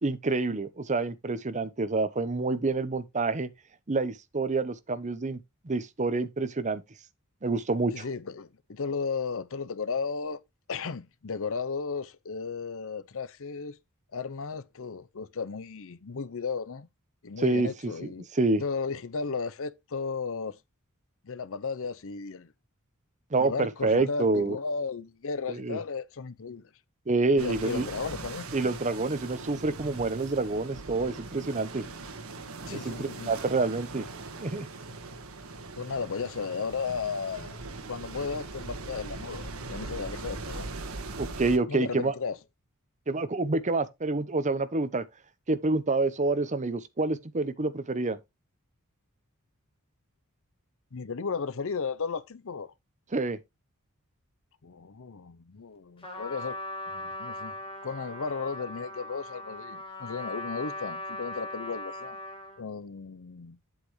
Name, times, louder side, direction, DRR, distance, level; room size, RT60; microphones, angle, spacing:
voice 1, 0.0-3.5 3.9-6.8 7.4-8.1 17.4-18.6 23.3-24.6 25.5-25.8 27.1-27.9 28.5-31.9 32.7-34.1 34.4-34.7 41.2-42.1 43.1-45.0 45.5-48.2 53.1-53.4, right 3 dB, 35° right, 0.8 m, -28 dB
voice 2, 7.9-10.4 10.7-13.8 14.1-16.9 17.2-18.3 18.6-20.6 21.2-22.5 23.4-26.7 27.3-28.5 32.7-33.3 35.8-40.7 41.7-42.4 50.9-52.7 54.6-56.6 56.9-57.5 57.8-62.2 62.6-63.6, left 5 dB, 65° left, 0.7 m, -35 dB
sound 1, 27.4-41.6, right 3 dB, 70° right, 1.5 m, -40 dB
Trumpet, 56.0-62.6, left 1 dB, 25° left, 2.7 m, -39 dB
8.4 x 8.2 x 3.1 m
head